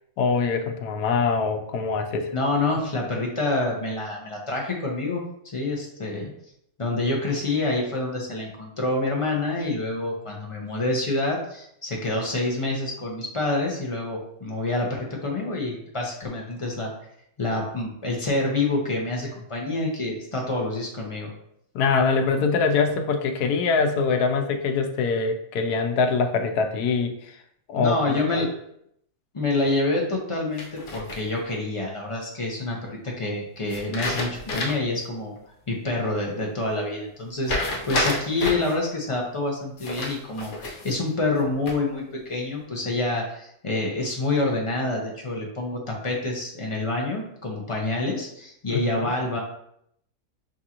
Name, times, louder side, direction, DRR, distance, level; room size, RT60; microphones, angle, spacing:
voice 1, 0.2-2.3 21.7-27.4 27.7-28.5 48.7-48.8, left 4 dB, 85° left, 6 dB, 1.1 m, -23 dB
voice 2, 2.3-5.2 5.5-6.3 6.8-16.9 17.4-21.3 27.8-28.5 29.3-35.3 35.7-49.4, left 2 dB, 40° left, -1 dB, 0.4 m, -27 dB
sound 1, 30.6-31.5 33.7-35.0 35.4-35.5 37.4-38.7 39.8-41.0 41.4-42.0, left 2 dB, 65° left, 1.3 m, -29 dB
6.0 x 2.5 x 2.8 m, 0.72 s
omnidirectional pair, 1.6 m